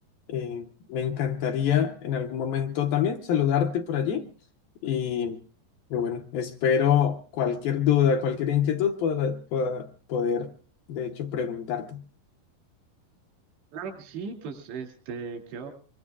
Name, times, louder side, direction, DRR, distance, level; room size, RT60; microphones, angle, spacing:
voice 1, 0.3-4.3 4.8-5.4 5.9-10.5 10.9-12.0, left 8 dB, 75° left, 4 dB, 2.3 m, -26 dB
voice 2, 13.7-15.7, right 5 dB, 85° right, 2 dB, 4.8 m, -37 dB
24.5 x 23.0 x 2.4 m, 0.37 s
omnidirectional pair, 4.9 m